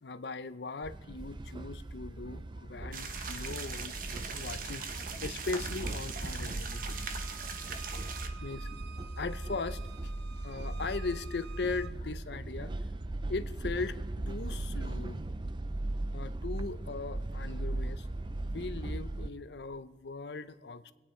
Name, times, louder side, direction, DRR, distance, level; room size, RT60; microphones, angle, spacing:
voice 1, 0.0-7.2 8.3-8.7 9.1-10.1 10.4-12.7 13.3-14.0 14.3-15.2 16.1-18.1 18.4-20.9, left 3 dB, 65° left, 13 dB, 0.7 m, -39 dB
sound 1, 0.8-19.3, right 2 dB, 25° right, 0.5 m, -38 dB
sound 2, 2.9-8.3, right 5 dB, 50° right, 1.2 m, -40 dB
Bowed string instrument, 6.7-11.9, right 8 dB, 70° right, 0.6 m, -52 dB
24.5 x 9.2 x 4.4 m, 1.3 s
head